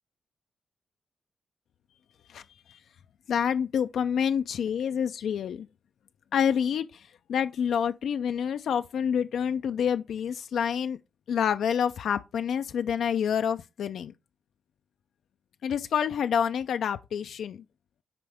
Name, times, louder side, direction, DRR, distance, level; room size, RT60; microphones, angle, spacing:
voice 1, 3.3-5.7 6.3-7.0 7.3-11.0 11.3-14.1 15.6-17.6, left 8 dB, 80° left, 0.3 m, -27 dB
9.7 x 4.3 x 3.4 m
cardioid pair, 105°, 0 cm